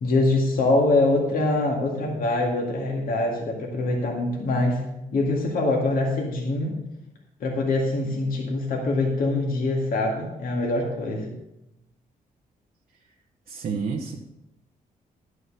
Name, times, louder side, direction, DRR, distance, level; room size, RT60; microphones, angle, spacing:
voice 1, 0.0-4.8 5.1-6.8 7.4-11.3, left 2 dB, 70° left, -1 dB, 2.2 m, -24 dB
voice 2, 13.5-14.2, right 5 dB, 70° right, 1 dB, 1.1 m, -29 dB
11.0 x 6.5 x 6.7 m, 0.90 s
cardioid pair, 105°, 15 cm